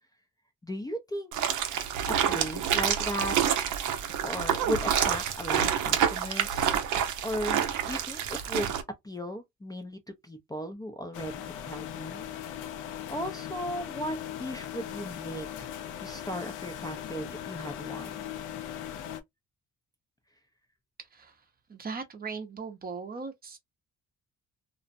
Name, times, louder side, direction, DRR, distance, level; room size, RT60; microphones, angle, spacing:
voice 1, 0.6-1.3 2.1-3.4 4.2-6.7 7.2-8.7 9.0-12.2 13.1-18.2, equal, 15° left, 0.4 m, -36 dB
sound 1, 1.3-8.8, right 9 dB, 80° right, 0.6 m, -28 dB
sound 2, 11.1-19.2, left 10 dB, 80° left, 0.5 m, -39 dB
voice 2, 21.0-21.4 21.7-23.6, right 4 dB, 30° right, 0.6 m, -39 dB
2.5 x 2.1 x 2.5 m
cardioid pair, 90°, 30 cm